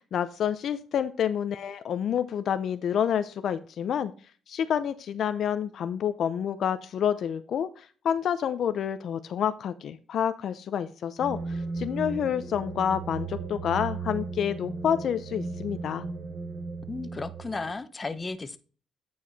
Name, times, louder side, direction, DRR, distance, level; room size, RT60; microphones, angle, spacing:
voice 1, 0.1-4.1 4.5-16.0, left 8 dB, 65° left, 0.6 m, -28 dB
sound 1, 11.2-17.7, right 4 dB, 45° right, 3.9 m, -36 dB
voice 2, 16.9-18.6, left 3 dB, 25° left, 0.9 m, -34 dB
9.1 x 4.7 x 4.1 m
cardioid pair, 90°, 0 cm